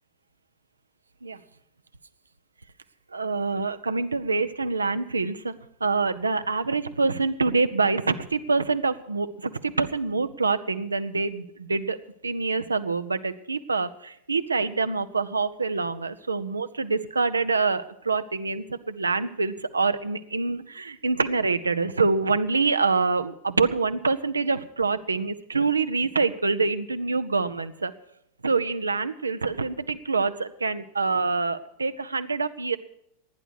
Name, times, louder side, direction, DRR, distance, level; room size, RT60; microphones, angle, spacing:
voice 1, 3.1-5.5 5.8-27.9 28.4-32.8, right 4 dB, 75° right, 11 dB, 0.7 m, -26 dB
16.0 x 10.0 x 6.3 m, 0.75 s
figure-of-eight pair, 90°, 0 cm